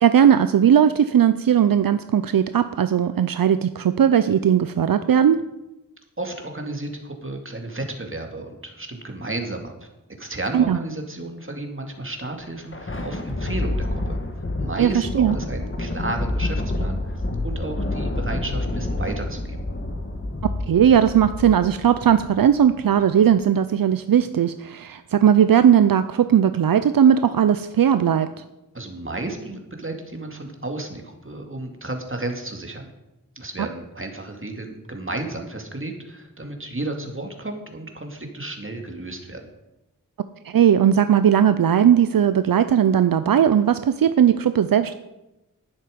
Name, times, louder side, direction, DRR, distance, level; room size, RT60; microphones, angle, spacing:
voice 1, 0.0-5.4 10.5-10.8 14.8-15.3 20.7-28.3 40.4-44.9, right 9 dB, 80° right, 12 dB, 0.5 m, -18 dB
voice 2, 6.2-9.7 10.2-14.2 14.6-19.6 28.7-32.9 33.4-39.5, right 2 dB, 35° right, 3 dB, 2.3 m, -33 dB
Thunder, 12.4-23.0, left 2 dB, 35° left, 1.6 m, -28 dB
11.5 x 10.0 x 5.2 m, 0.96 s
cardioid pair, 45°, 34 cm